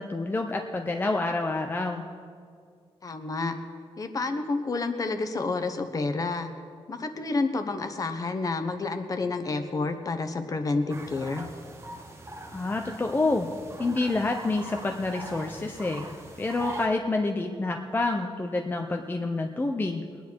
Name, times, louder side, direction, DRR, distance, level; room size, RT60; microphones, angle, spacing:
voice 1, 0.0-2.1 12.5-13.5 13.8-16.1 16.4-20.0, left 2 dB, 20° left, 3 dB, 0.7 m, -28 dB
voice 2, 3.0-3.6 4.0-6.5 6.9-11.5, left 3 dB, 35° left, 7 dB, 1.0 m, -29 dB
sound 1, 10.9-16.9, right 1 dB, 25° right, 1.2 m, -42 dB
22.0 x 9.7 x 4.6 m, 2.2 s
wide cardioid pair, 160°, 10 cm